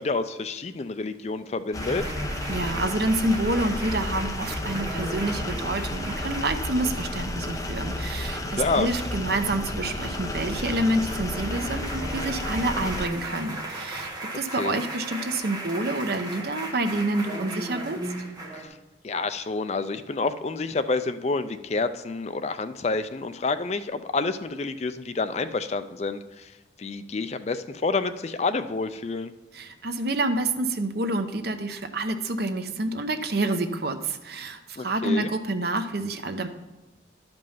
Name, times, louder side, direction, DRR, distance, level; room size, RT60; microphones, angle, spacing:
voice 1, 0.0-2.0 8.5-8.9 14.6-14.8 18.5-18.8 19.0-26.5 26.8-29.3 34.8-35.3, left 3 dB, 35° left, 11 dB, 0.4 m, -28 dB
sound 1, 1.7-13.1, left 1 dB, 20° left, 0.8 m, -32 dB
sound 2, 1.8-18.7, right 1 dB, 20° right, 1.3 m, -38 dB
voice 2, 2.5-18.0 29.5-36.5, right 2 dB, 55° right, 8 dB, 0.8 m, -28 dB
11.5 x 5.3 x 5.5 m, 1.1 s
head